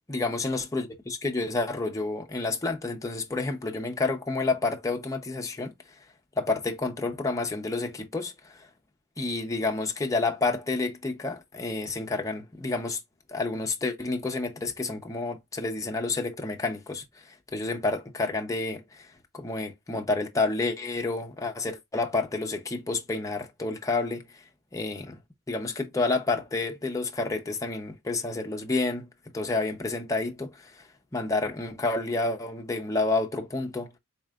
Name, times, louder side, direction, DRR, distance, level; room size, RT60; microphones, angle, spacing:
voice 1, 0.1-5.7 6.4-8.7 9.2-13.0 13.3-17.0 17.5-24.4 24.7-25.2 25.5-29.1 29.3-33.9, left 3 dB, 15° left, 0.7 m, -29 dB
4.3 x 3.2 x 2.4 m
head